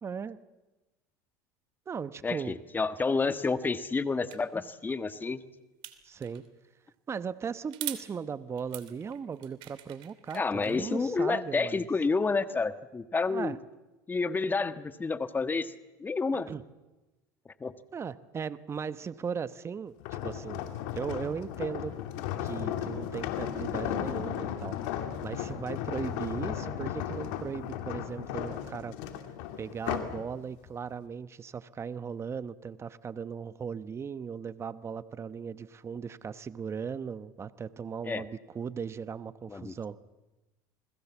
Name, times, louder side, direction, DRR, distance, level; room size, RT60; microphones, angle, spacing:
voice 1, 0.0-0.4 1.9-2.6 6.0-6.4 7.1-11.9 13.3-13.6 16.5-16.6 17.9-20.0 20.2-20.6 20.9-21.9 22.4-24.8 25.2-28.9 29.6-40.0, right 6 dB, 30° right, 14 dB, 1.1 m, -37 dB
voice 2, 2.2-5.4 10.3-13.6 14.1-15.7 16.0-16.5 17.6-17.7 38.0-38.2 39.5-39.7, left 4 dB, 20° left, 11 dB, 1.4 m, -29 dB
sound 1, 4.3-4.4 5.8-6.5 7.7-8.0 8.6-10.8, right 15 dB, 60° right, 2.9 m, -42 dB
sound 2, 20.0-30.2 30.7-30.9, left 10 dB, 75° left, 2.7 m, -35 dB
28.5 x 21.0 x 7.3 m, 1.1 s
supercardioid pair, 95°, 10 cm